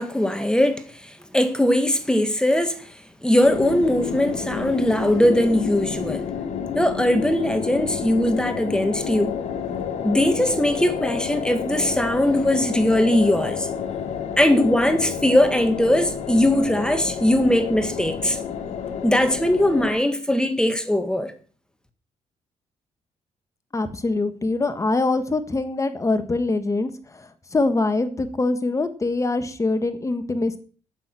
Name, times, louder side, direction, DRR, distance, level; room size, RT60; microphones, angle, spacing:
voice 1, 0.0-2.9 3.2-6.2 6.7-9.4 10.0-13.7 14.4-18.4 19.0-21.3, left 1 dB, 5° left, 1.8 m, -20 dB
sound 1, 3.4-19.9, left 7 dB, 75° left, 2.0 m, -30 dB
voice 2, 23.7-30.6, left 3 dB, 25° left, 1.7 m, -24 dB
9.3 x 8.8 x 7.6 m
cardioid pair, 85°, 12 cm